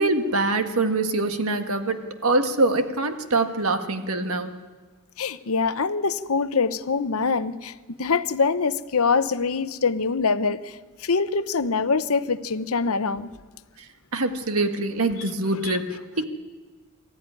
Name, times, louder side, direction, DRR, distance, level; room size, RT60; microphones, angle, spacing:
voice 1, 0.0-4.5 13.8-16.2, right 2 dB, 75° right, 7 dB, 1.5 m, -24 dB
voice 2, 5.2-13.3 15.2-16.2, left 4 dB, 70° left, 13 dB, 0.8 m, -25 dB
22.0 x 14.0 x 9.8 m, 1.4 s
head